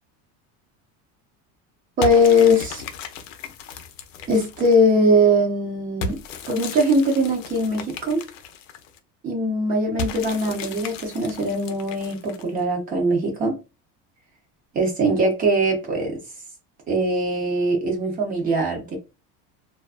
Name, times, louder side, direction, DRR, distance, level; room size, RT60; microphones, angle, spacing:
sound 1, 2.0-4.9 6.0-9.0 10.0-12.6, left 4 dB, 70° left, 0.6 m, -35 dB
voice 1, 2.0-2.8 4.3-6.2 6.5-8.2 9.2-13.5 14.7-16.2 16.9-19.0, equal, 25° right, 0.6 m, -21 dB
2.4 x 2.2 x 2.4 m
cardioid pair, 175°, 38 cm